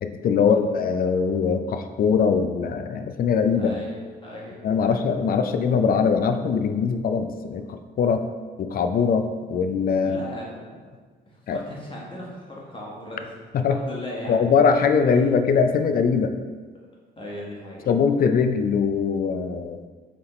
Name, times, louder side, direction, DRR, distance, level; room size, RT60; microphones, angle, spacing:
voice 1, 0.0-3.7 4.6-8.3 8.6-10.2 11.5-11.6 13.5-13.8 14.3-16.3 17.9-19.8, left 6 dB, 50° left, 7 dB, 0.4 m, -22 dB
voice 2, 3.6-5.0 10.0-10.9 11.3-13.4 13.7-14.4 15.1-15.2 16.7-16.9 17.2-17.9, left 1 dB, 25° left, -4 dB, 1.2 m, -38 dB
4.7 x 3.4 x 3.1 m, 1.4 s
cardioid pair, 90°, 20 cm